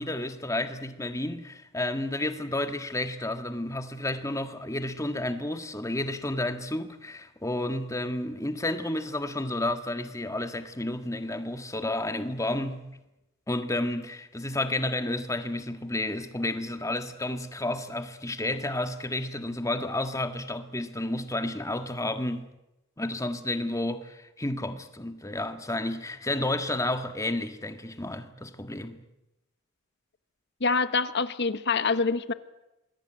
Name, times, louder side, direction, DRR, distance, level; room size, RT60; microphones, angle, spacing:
voice 1, 0.0-12.9 13.5-22.5 23.0-29.0, left 1 dB, 15° left, 1.7 m, -31 dB
voice 2, 30.6-32.3, left 4 dB, 55° left, 1.1 m, -25 dB
27.0 x 21.5 x 9.0 m
head